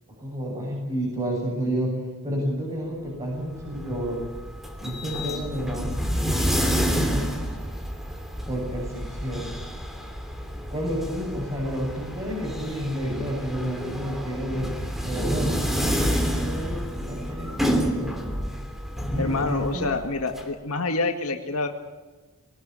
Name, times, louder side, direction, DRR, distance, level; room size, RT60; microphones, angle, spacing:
voice 1, 0.2-4.2 4.8-5.9 6.3-7.3 8.5-9.5 10.7-14.7 15.0-18.1 19.1-19.9, equal, 25° right, -5 dB, 7.7 m, -30 dB
sound 1, 3.4-20.4, equal, ahead, 2.9 m, -29 dB
voice 2, 19.2-21.7, left 3 dB, 80° left, 5 dB, 1.9 m, -27 dB
22.0 x 19.0 x 9.1 m, 1.3 s
head